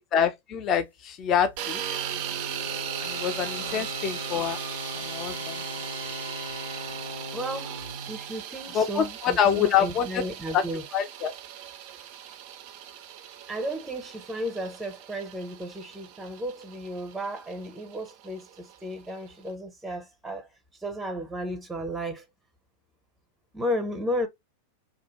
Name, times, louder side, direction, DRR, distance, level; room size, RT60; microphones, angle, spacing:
voice 1, 0.1-1.8 3.0-4.6 4.9-5.6 8.7-10.2 10.5-10.6 10.9-11.3, left 8 dB, 35° left, 0.5 m, -26 dB
sound 1, 1.2-8.3, left 1 dB, 90° left, 0.8 m, -39 dB
sound 2, 1.6-19.5, right 10 dB, 45° right, 0.4 m, -38 dB
voice 2, 7.3-7.7 8.1-10.8 13.5-20.5 20.8-22.2 23.5-24.3, equal, 5° right, 0.7 m, -34 dB
2.7 x 2.2 x 3.0 m
figure-of-eight pair, 90°, 0 cm